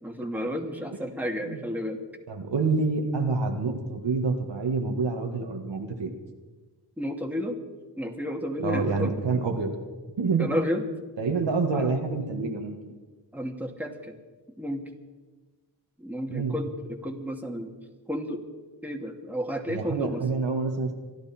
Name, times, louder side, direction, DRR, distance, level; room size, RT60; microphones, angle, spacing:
voice 1, 0.0-2.0 7.0-7.6 8.0-9.4 10.4-10.8 11.7-11.9 13.3-14.1 14.6-14.8 16.0-17.7 18.1-18.4 18.8-20.2, equal, 5° right, 1 dB, 2.5 m, -32 dB
voice 2, 2.3-6.1 8.6-9.7 10.2-10.6 11.2-12.8 16.3-16.5 19.7-20.9, right 4 dB, 80° right, 3 dB, 1.9 m, -27 dB
26.5 x 12.0 x 4.4 m, 1.3 s
cardioid pair, 55°, 43 cm